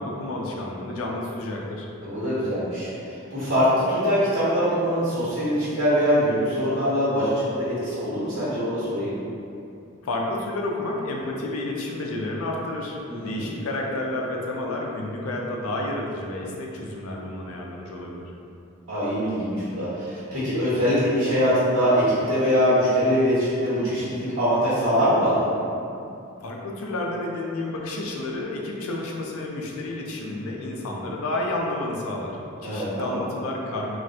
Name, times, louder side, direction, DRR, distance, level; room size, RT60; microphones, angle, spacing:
voice 1, 0.0-1.9 10.0-18.3 26.4-34.0, left 2 dB, 80° left, -1 dB, 0.4 m, -30 dB
voice 2, 2.0-9.1 13.1-13.5 18.9-25.5 32.6-33.2, equal, 80° right, -13 dB, 1.1 m, -23 dB
3.1 x 2.5 x 2.7 m, 2.6 s
head